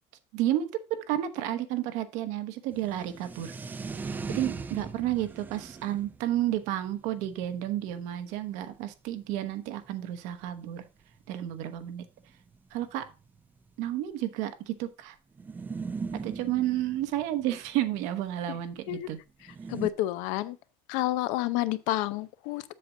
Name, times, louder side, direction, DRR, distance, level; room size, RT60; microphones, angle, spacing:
voice 1, 0.3-3.5 4.0-10.8 11.3-12.0 12.7-13.0 13.8-15.2 16.1-19.2, right 13 dB, 75° right, 1.0 m, -31 dB
sound 1, 2.7-8.8 9.5-9.6 9.8-9.9 10.0-10.3 11.2-11.3 11.5-11.6 12.4-13.9 15.4-18.0 19.4-19.9, right 4 dB, 15° right, 0.4 m, -39 dB
voice 2, 19.7-20.6 20.9-22.7, left 16 dB, 85° left, 0.7 m, -29 dB
7.7 x 6.8 x 3.8 m
cardioid pair, 160°, 13 cm